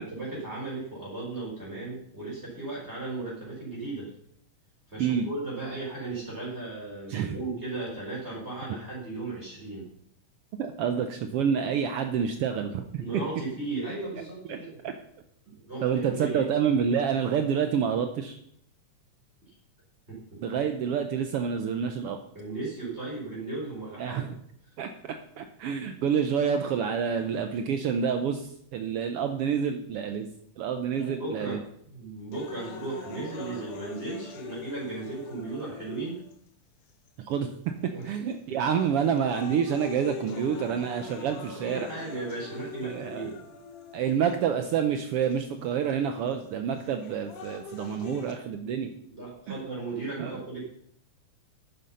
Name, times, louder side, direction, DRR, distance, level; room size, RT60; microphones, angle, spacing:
voice 1, 0.0-4.1 4.9-9.9 13.0-14.8 15.5-16.4 20.1-20.4 22.3-24.3 30.9-36.2 37.9-38.2 38.5-38.6 39.5-39.6 41.6-43.3 49.0-50.7, right 3 dB, 20° right, -5 dB, 4.4 m, -36 dB
voice 2, 10.6-13.0 14.5-14.6 14.8-14.9 15.8-18.4 20.4-22.2 24.0-24.3 24.8-30.3 30.6-31.6 37.2-37.5 38.0-41.9 42.8-43.2 43.9-48.9 49.5-49.6 50.2-50.4, right 7 dB, 85° right, 7 dB, 1.3 m, -28 dB
sound 1, 32.3-36.3 37.1-37.2 38.0-38.3 38.8-44.3 45.3-45.4 46.8-48.3, left 5 dB, 80° left, 3.0 m, -42 dB
11.5 x 9.7 x 5.6 m, 0.69 s
omnidirectional pair, 3.6 m